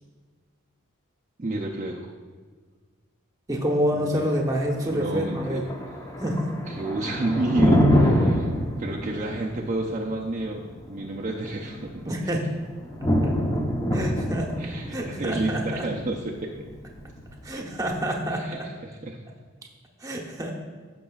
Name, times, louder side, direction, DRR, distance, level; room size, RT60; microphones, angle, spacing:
voice 1, 1.4-2.1 3.9-4.3 4.9-5.7 6.7-8.5 8.8-10.6 10.9-12.2 14.6-16.6 18.4-18.6 19.0-19.2, right 2 dB, 35° right, -2 dB, 0.6 m, -30 dB
voice 2, 3.5-5.7 6.2-6.5 12.1-12.4 13.2-13.3 13.9-14.5 14.9-15.9 17.4-18.7 20.0-20.5, equal, 15° right, 1 dB, 1.0 m, -27 dB
Thunder, 4.2-18.2, equal, 15° left, 0.8 m, -27 dB
15.5 x 6.0 x 2.4 m, 1.5 s
head